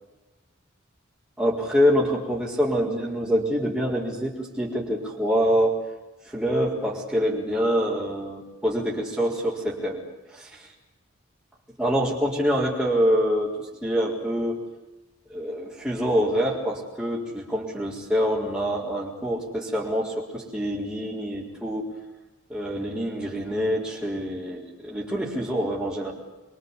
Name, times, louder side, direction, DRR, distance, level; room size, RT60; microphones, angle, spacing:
voice 1, 1.4-5.8 6.2-10.0 10.3-10.7 11.8-14.6 15.3-22.0 22.5-26.1, equal, 5° right, -7 dB, 4.6 m, -25 dB
26.0 x 24.5 x 8.5 m, 1.1 s
head